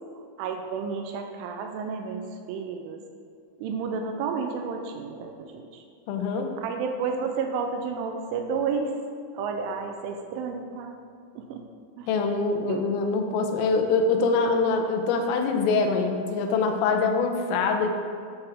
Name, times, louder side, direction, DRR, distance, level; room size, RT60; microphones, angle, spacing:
voice 1, 0.4-3.0 3.6-5.8 6.6-8.9 9.3-11.0 11.4-11.6 12.0-12.3 12.7-12.9, right 5 dB, 85° right, 4 dB, 3.0 m, -31 dB
voice 2, 6.1-6.5 12.1-17.9, left 4 dB, 85° left, 5 dB, 3.5 m, -24 dB
12.0 x 9.1 x 3.6 m, 2.3 s
omnidirectional pair, 5.8 m